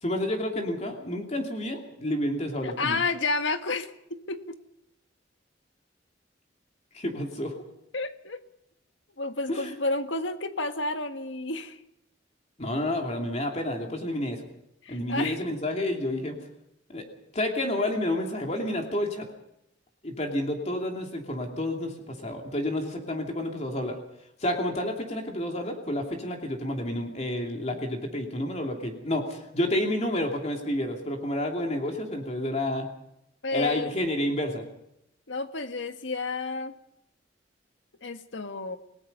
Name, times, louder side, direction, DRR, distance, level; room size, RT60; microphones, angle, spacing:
voice 1, 0.0-3.0 6.9-7.5 9.5-9.7 12.6-14.4 14.9-16.4 16.9-17.0 17.3-19.3 20.0-24.0 24.4-32.9 33.5-34.6, left 1 dB, 35° left, 2 dB, 2.8 m, -30 dB
voice 2, 2.6-4.6 7.9-8.4 9.2-11.8 14.8-15.4 33.4-33.9 35.3-36.7 38.0-38.8, left 3 dB, 85° left, 8 dB, 1.6 m, -31 dB
29.0 x 18.5 x 5.5 m, 0.81 s
head